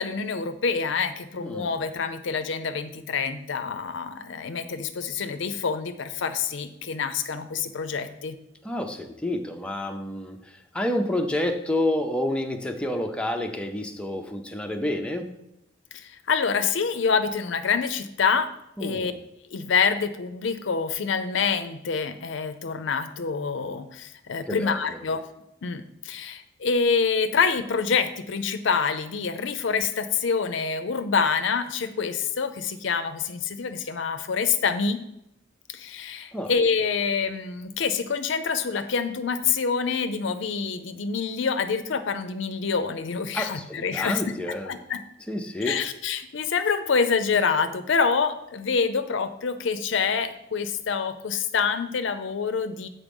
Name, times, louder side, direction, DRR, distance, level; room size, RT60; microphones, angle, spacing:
voice 1, 0.0-8.4 15.9-18.5 18.8-19.1 19.5-25.2 25.6-35.0 35.7-44.2 44.7-45.0 45.7-52.9, left 5 dB, 65° left, 10 dB, 0.5 m, -26 dB
voice 2, 1.3-1.8 8.6-15.3 18.8-19.2 24.5-25.0 36.3-36.5 43.3-44.8 45.3-45.8, left 1 dB, 5° left, 3 dB, 0.5 m, -29 dB
7.3 x 4.1 x 5.3 m, 0.82 s
head